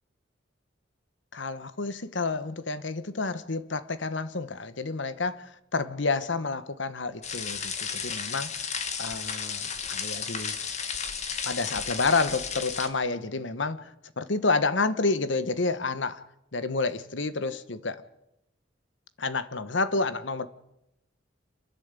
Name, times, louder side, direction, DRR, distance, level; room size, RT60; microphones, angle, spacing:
voice 1, 1.3-8.7 9.0-10.6 11.4-16.2 16.5-18.0 19.2-20.5, left 3 dB, 75° left, 13 dB, 1.2 m, -29 dB
sound 1, 7.2-12.9, left 6 dB, 35° left, 1.7 m, -33 dB
29.0 x 11.0 x 8.3 m, 0.85 s
head